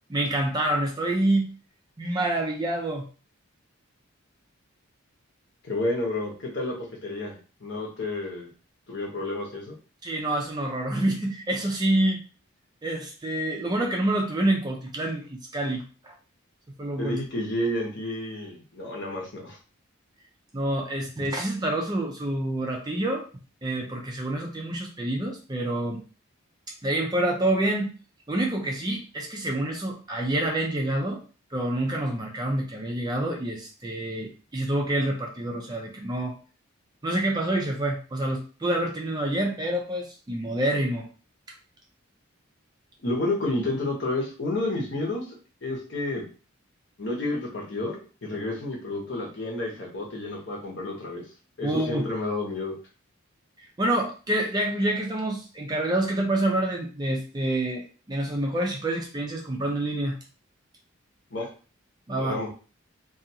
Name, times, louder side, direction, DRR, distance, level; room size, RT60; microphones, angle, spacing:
voice 1, 0.1-1.5 2.0-3.0 10.0-12.2 12.8-16.1 16.8-17.2 20.5-23.3 23.6-26.0 26.8-27.9 28.3-31.2 31.5-36.4 37.0-41.1 41.5-41.6 51.6-52.1 53.6-60.2 62.1-62.4, right 1 dB, 20° right, 1 dB, 0.4 m, -27 dB
voice 2, 5.6-8.5 8.9-9.7 17.0-19.6 43.0-45.2 45.6-46.2 47.0-48.0 48.2-51.2 51.6-52.7 61.3-61.5 62.2-62.5, left 2 dB, 55° left, -2 dB, 0.9 m, -30 dB
2.5 x 2.3 x 2.7 m, 0.36 s
head